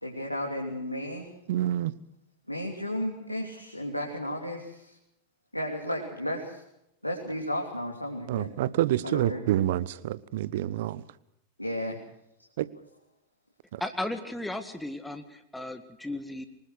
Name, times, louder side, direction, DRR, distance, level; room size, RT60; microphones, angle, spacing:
voice 1, 0.0-1.3 2.5-5.0 5.5-6.6 7.0-8.7 9.0-9.5 11.6-12.0, equal, 85° left, 0 dB, 3.3 m, -33 dB
voice 2, 1.5-1.9 8.3-11.0 12.6-12.7 13.7-13.8, right 13 dB, 55° right, 19 dB, 1.0 m, -27 dB
voice 3, 13.8-16.4, left 1 dB, 5° left, 8 dB, 1.9 m, -35 dB
24.5 x 20.0 x 6.4 m, 0.80 s
figure-of-eight pair, 90°, 0 cm